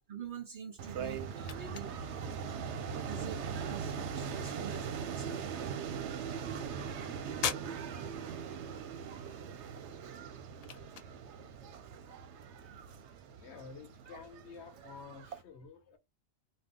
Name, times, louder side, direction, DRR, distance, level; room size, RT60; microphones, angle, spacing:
voice 1, 0.1-2.4 3.1-5.4 12.6-12.8, right 7 dB, 55° right, 0.6 m, -47 dB
sound 1, 0.6-15.1, left 7 dB, 60° left, 0.4 m, -47 dB
sound 2, 0.8-15.4, right 6 dB, 80° right, 0.9 m, -41 dB
voice 2, 12.6-13.0 13.4-16.0, left 5 dB, 80° left, 1.0 m, -51 dB
2.6 x 2.3 x 3.5 m
omnidirectional pair, 1.2 m